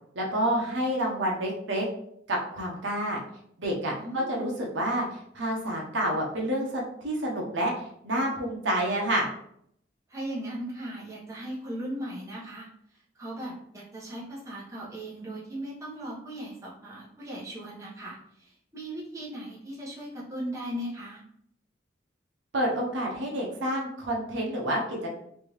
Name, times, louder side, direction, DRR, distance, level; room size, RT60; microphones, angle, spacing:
voice 1, 0.1-1.8 2.3-3.2 3.6-9.3 22.5-25.2, right 1 dB, 75° right, -2 dB, 0.8 m, -29 dB
voice 2, 4.0-4.5 10.1-12.7 13.1-21.2, right 1 dB, 15° right, -7 dB, 1.1 m, -38 dB
3.3 x 2.7 x 3.1 m, 0.71 s
head